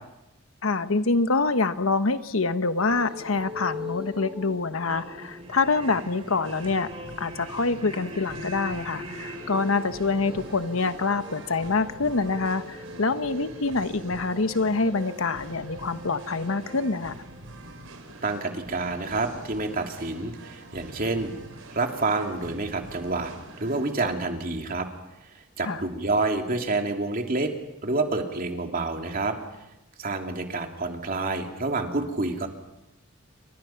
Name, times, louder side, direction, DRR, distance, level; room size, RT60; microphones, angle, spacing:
voice 1, 0.6-6.9 7.2-17.1 25.6-25.8, left 3 dB, 70° left, 11 dB, 1.2 m, -26 dB
sound 1, 2.8-18.7, left 1 dB, 25° right, 4.5 m, -41 dB
Singing, 5.4-24.5, right 2 dB, 75° right, 3.9 m, -45 dB
voice 2, 18.2-21.3 21.7-23.3 23.6-24.9 25.6-27.5 27.8-29.4 30.0-32.5, right 3 dB, 40° right, 3 dB, 2.9 m, -28 dB
29.0 x 24.5 x 5.9 m, 0.91 s
head